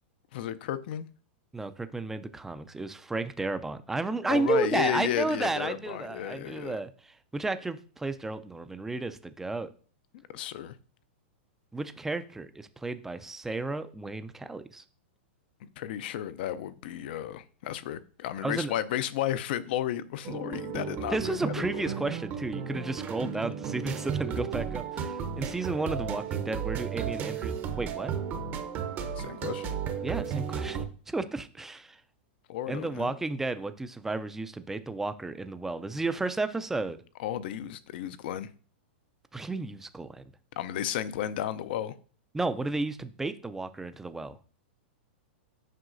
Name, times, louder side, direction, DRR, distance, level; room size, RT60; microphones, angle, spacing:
voice 1, 0.3-1.1 4.3-6.8 10.1-10.8 15.8-21.9 29.1-29.8 32.5-33.1 37.2-38.5 40.6-41.9, left 11 dB, 60° left, 0.5 m, -33 dB
voice 2, 1.5-9.7 11.7-14.8 18.4-18.7 21.1-28.1 30.0-32.0 32.7-37.0 39.3-40.2 42.3-44.4, right 3 dB, 5° right, 0.4 m, -32 dB
sound 1, 20.2-30.8, right 7 dB, 30° right, 0.7 m, -34 dB
7.6 x 5.4 x 2.6 m
hypercardioid pair, 140°, 6 cm